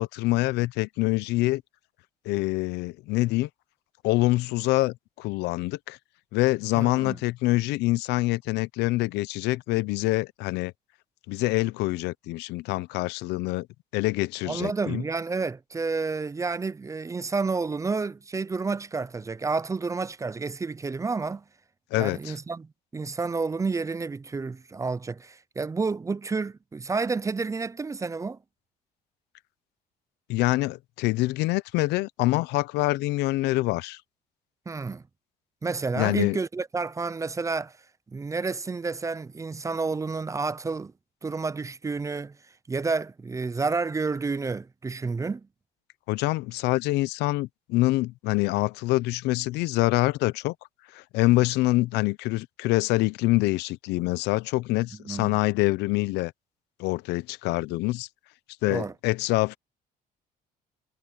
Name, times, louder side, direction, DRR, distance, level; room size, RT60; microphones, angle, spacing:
voice 1, 0.0-1.6 2.3-3.5 4.0-6.0 6.3-10.7 11.3-13.7 13.9-15.0 21.9-22.3 30.3-34.0 36.0-36.4 46.1-50.5 50.9-56.3 56.8-58.1 58.6-59.6, left 20 dB, 90° left, 0.6 m, -25 dB
voice 2, 6.7-7.2 14.5-21.4 22.0-28.4 34.7-35.0 35.6-37.7 38.1-40.9 41.2-42.3 42.7-45.5 55.1-55.4 58.7-58.9, right 4 dB, 20° right, 0.5 m, -30 dB
cardioid pair, 110°, 17 cm